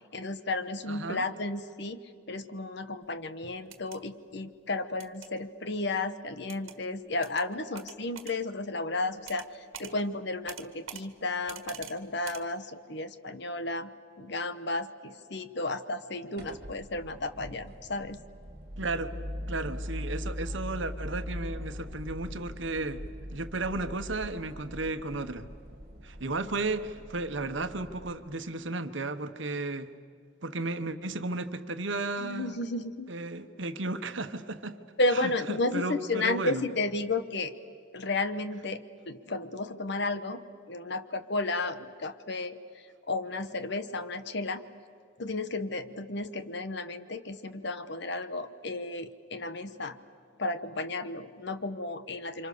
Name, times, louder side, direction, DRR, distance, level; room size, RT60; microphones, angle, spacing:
voice 1, 0.1-2.0 2.3-13.9 14.2-18.2 32.2-33.1 35.0-37.5 37.9-42.6 43.1-44.6 45.2-50.0 50.4-52.5, left 2 dB, 55° left, 11 dB, 1.2 m, -33 dB
voice 2, 0.9-1.2 18.8-19.1 19.5-23.0 23.3-25.4 26.0-29.9 30.4-32.6 33.1-34.8 35.2-36.6, right 2 dB, 65° right, 9 dB, 1.3 m, -34 dB
sound 1, 3.6-4.0 5.0-5.3 6.5-6.8 7.2-7.4 7.7-8.3 9.3-9.5 9.7-9.9 10.5-11.0 11.5-11.9 12.2-12.4, right 8 dB, 80° right, 1.6 m, -44 dB
sound 2, 16.4-28.1, left 1 dB, 50° right, 2.5 m, -41 dB
29.5 x 26.0 x 6.8 m, 2.2 s
head